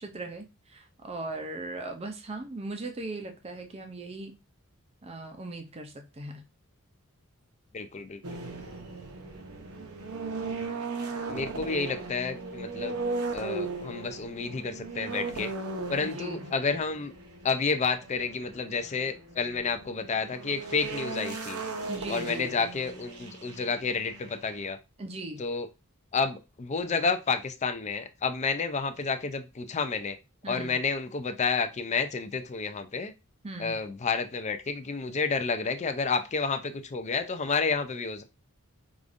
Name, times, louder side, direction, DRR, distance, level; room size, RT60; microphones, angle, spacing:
voice 1, 0.0-4.4 5.0-6.4 16.0-16.4 21.9-22.5 25.0-25.4 30.4-30.8 33.4-33.8, right 2 dB, 30° right, 0.5 m, -39 dB
voice 2, 7.7-8.4 11.3-13.0 13.3-15.5 15.9-17.1 17.4-21.6 22.1-24.8 25.4-25.7 26.1-30.2 30.5-33.1 33.6-38.2, left 4 dB, 30° left, 0.4 m, -30 dB
sound 1, 8.2-24.7, right 3 dB, 80° right, 0.9 m, -37 dB
4.8 x 2.5 x 2.5 m
head